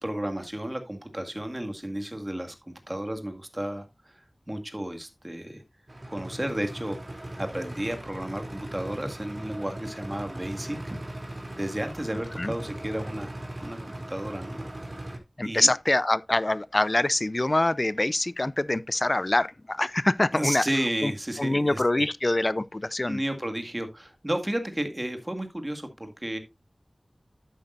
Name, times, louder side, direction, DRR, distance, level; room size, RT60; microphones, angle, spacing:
voice 1, 0.0-5.6 6.1-11.0 11.6-14.6 14.9-15.1 15.4-15.7 20.3-22.1 23.1-26.4, right 1 dB, 20° right, 2.0 m, -33 dB
sound 1, 5.9-15.2, right 1 dB, 40° right, 2.9 m, -39 dB
voice 2, 15.4-20.6 21.0-21.1 21.4-23.2, left 2 dB, 35° left, 0.5 m, -25 dB
11.0 x 8.4 x 2.5 m
wide cardioid pair, 60°, 0 cm